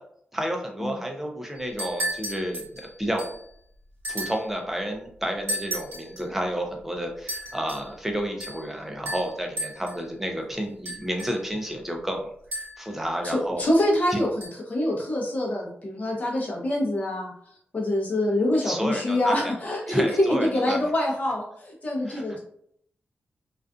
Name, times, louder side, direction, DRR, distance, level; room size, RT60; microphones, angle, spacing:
voice 1, 0.3-3.3 4.1-13.7 14.1-14.2 18.6-19.6 19.9-20.8 22.1-22.2, equal, 5° right, 2 dB, 0.4 m, -31 dB
sound 1, 1.6-3.5 4.0-4.5 5.5-6.2 7.3-7.9 8.4-8.7 9.1-10.0 10.9-11.6 12.5-13.0 14.4-14.5, right 1 dB, 70° right, 1.1 m, -34 dB
voice 2, 13.3-17.3 17.7-22.4, left 1 dB, 40° left, -1 dB, 0.8 m, -25 dB
2.4 x 2.3 x 2.3 m, 0.68 s
wide cardioid pair, 125°, 4 cm